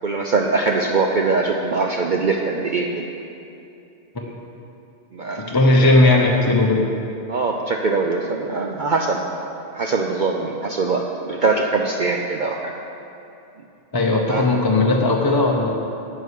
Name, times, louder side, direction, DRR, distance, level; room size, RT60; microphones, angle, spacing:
voice 1, 0.0-3.0 4.2-4.3 5.1-5.5 5.7-5.9 7.3-9.2 9.7-12.7 14.3-14.5, right 4 dB, 55° right, 1 dB, 0.6 m, -22 dB
voice 2, 5.5-6.8 13.9-15.7, left 2 dB, 25° left, 0 dB, 0.5 m, -17 dB
9.4 x 5.5 x 8.3 m, 2.7 s
omnidirectional pair, 1.2 m